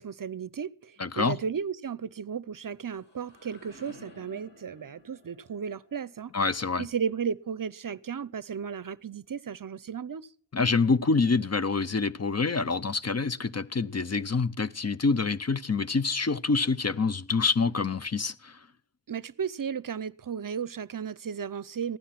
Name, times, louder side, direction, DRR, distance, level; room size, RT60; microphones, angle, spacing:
voice 1, 0.0-6.3 6.8-10.3 19.1-22.0, right 7 dB, 50° right, 0.6 m, -34 dB
voice 2, 1.0-1.4 6.3-6.9 10.5-18.6, left 4 dB, 35° left, 0.7 m, -26 dB
sound 1, 2.5-8.3, left 2 dB, 70° left, 4.2 m, -56 dB
15.5 x 12.5 x 5.8 m
cardioid pair, 55°, 42 cm